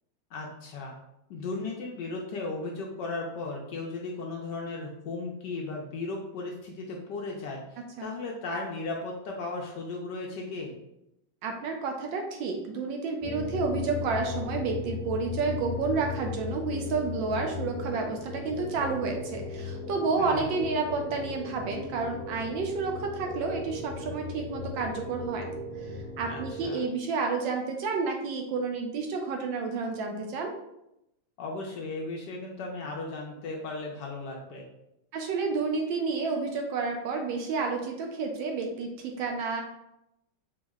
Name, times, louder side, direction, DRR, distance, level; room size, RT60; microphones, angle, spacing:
voice 1, 0.3-0.9 1.3-10.8 20.2-20.5 26.3-26.8 31.4-34.6, left 3 dB, 75° left, 0 dB, 1.0 m, -36 dB
voice 2, 11.4-25.6 25.9-30.5 35.1-39.6, right 4 dB, 75° right, 3 dB, 1.2 m, -30 dB
sound 1, 13.2-26.7, left 3 dB, 25° left, 0.9 m, -37 dB
4.4 x 2.0 x 3.5 m, 0.84 s
omnidirectional pair, 2.2 m